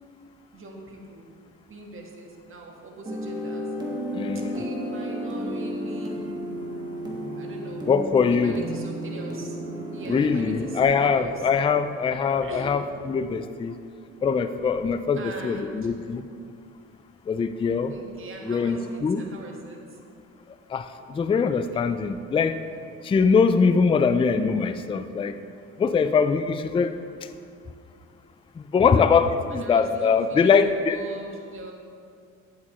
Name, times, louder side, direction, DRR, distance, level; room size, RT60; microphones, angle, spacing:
voice 1, 0.5-1.3 1.7-3.7 4.3-6.2 7.3-7.9 8.3-9.6 9.9-11.5 12.4-12.8 15.2-15.9 17.9-20.0 21.5-21.9 29.5-31.7, right 2 dB, 45° right, 0 dB, 1.5 m, -41 dB
sound 1, 3.0-10.8, equal, 15° right, 1.5 m, -32 dB
voice 2, 4.1-4.6 7.9-8.6 10.1-13.8 14.2-16.2 17.3-17.9 18.4-19.2 20.7-22.6 23.0-25.4 25.8-27.0 28.7-31.0, left 5 dB, 20° left, 10 dB, 0.3 m, -22 dB
9.6 x 8.2 x 3.0 m, 2.3 s
cardioid pair, 90°, 30 cm